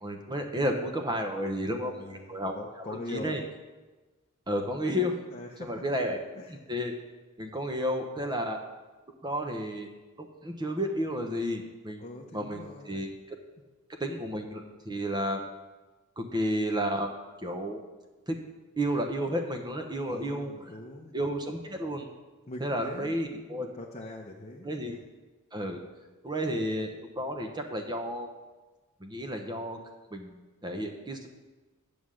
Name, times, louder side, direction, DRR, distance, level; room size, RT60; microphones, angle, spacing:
voice 1, 0.0-2.5 2.8-3.4 4.5-5.2 5.6-6.2 6.5-6.9 7.4-8.6 9.2-9.9 10.2-12.0 12.3-13.1 14.0-15.4 16.2-17.1 17.4-17.8 18.3-18.4 18.8-20.5 21.1-22.1 22.6-23.7 24.6-25.0 25.5-25.8 26.2-28.3 29.0-29.8 30.1-31.3, equal, 20° right, 3 dB, 0.9 m, -32 dB
voice 2, 1.3-3.3 5.3-5.8 6.3-6.6 12.0-13.1 20.0-21.1 22.5-24.7, left 2 dB, 30° left, -1 dB, 0.8 m, -43 dB
9.6 x 7.0 x 6.4 m, 1.2 s
head